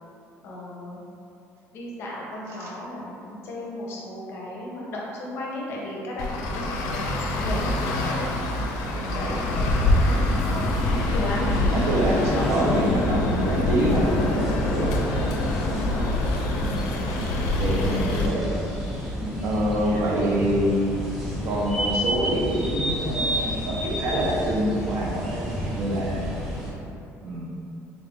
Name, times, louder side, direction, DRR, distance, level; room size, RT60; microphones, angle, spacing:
voice 1, 0.4-1.0 1.7-8.2 8.8-11.4 11.9-13.1 15.6-16.1 17.0-17.9 19.2-19.6 19.8-20.1, left 1 dB, 45° left, -4 dB, 0.6 m, -35 dB
Traffic noise roadway noise, 6.2-18.3, left 1 dB, 80° left, 0.4 m, -25 dB
sound 1, 9.0-26.7, equal, 5° right, 0.6 m, -31 dB
voice 2, 11.4-15.0 16.6-16.9 17.3-18.5 19.4-20.8 21.4-26.3 27.2-27.5, right 1 dB, 50° right, -3 dB, 0.6 m, -26 dB
3.6 x 2.4 x 3.4 m, 2.6 s
cardioid pair, 180°, 6 cm